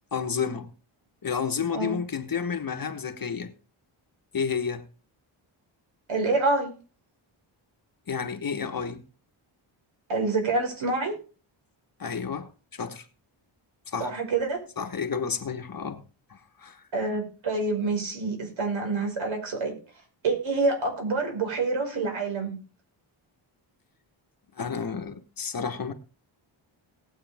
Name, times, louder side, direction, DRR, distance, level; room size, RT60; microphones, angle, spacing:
voice 1, 0.1-0.7 1.2-3.5 4.3-4.8 8.1-9.0 12.0-13.1 13.9-14.1 14.8-16.0 16.3-16.8 24.6-25.9, left 6 dB, 45° left, 1.3 m, -31 dB
voice 2, 6.1-6.7 10.1-11.1 14.0-14.6 16.9-19.7 20.2-22.6, right 3 dB, 70° right, 5.4 m, -27 dB
19.0 x 8.4 x 3.5 m
wide cardioid pair, 130°, 49 cm